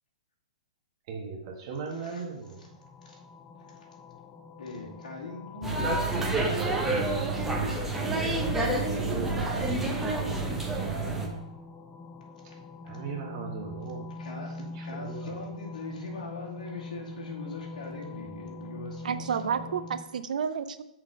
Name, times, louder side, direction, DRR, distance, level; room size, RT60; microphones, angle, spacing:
voice 1, 1.1-2.5 8.6-9.8 12.8-14.1 14.3-14.4 14.8-15.3, right 5 dB, 45° right, 0 dB, 1.3 m, -37 dB
voice 2, 1.8-2.3 2.6-2.7 3.0-3.2 3.7-3.9 4.6-6.0 8.0-8.9 14.2-19.7, left 3 dB, 85° left, -3 dB, 2.3 m, -41 dB
sound 1, 2.4-20.0, left 2 dB, 10° left, 0.5 m, -44 dB
sound 2, 5.6-11.3, right 2 dB, 10° right, 1.0 m, -28 dB
voice 3, 19.0-20.8, right 7 dB, 75° right, 13 dB, 0.5 m, -30 dB
6.1 x 4.1 x 5.0 m, 0.88 s
hypercardioid pair, 140°, 4 cm